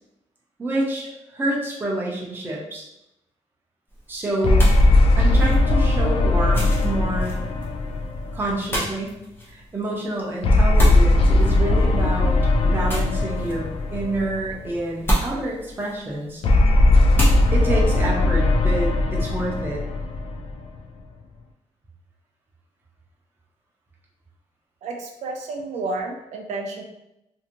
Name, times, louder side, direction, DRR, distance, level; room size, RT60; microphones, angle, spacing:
voice 1, 0.6-1.1 1.3-2.8 4.1-7.3 8.3-9.2 9.5-12.4 12.6-16.4 17.5-19.8, right 1 dB, 20° right, -4 dB, 0.7 m, -28 dB
sound 1, 3.9-17.7, right 1 dB, 20° left, 0.7 m, -32 dB
sound 2, 4.4-9.0 10.4-14.8 16.4-21.0, left 2 dB, 55° left, 0.4 m, -19 dB
voice 2, 24.8-26.8, right 3 dB, 80° right, 2 dB, 0.4 m, -31 dB
2.6 x 2.6 x 2.9 m, 0.86 s
wide cardioid pair, 165°, 12 cm